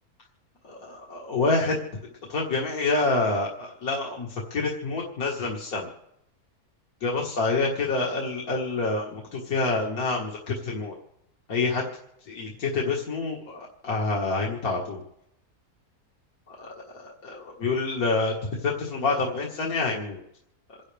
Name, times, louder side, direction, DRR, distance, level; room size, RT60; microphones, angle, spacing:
voice 1, 0.6-1.8 2.3-5.9 7.0-10.9 11.5-11.9 12.3-15.0 16.5-16.7 17.0-18.3 18.6-20.2, left 3 dB, 75° left, -2 dB, 2.2 m, -27 dB
28.0 x 11.0 x 3.4 m, 0.80 s
omnidirectional pair, 1.5 m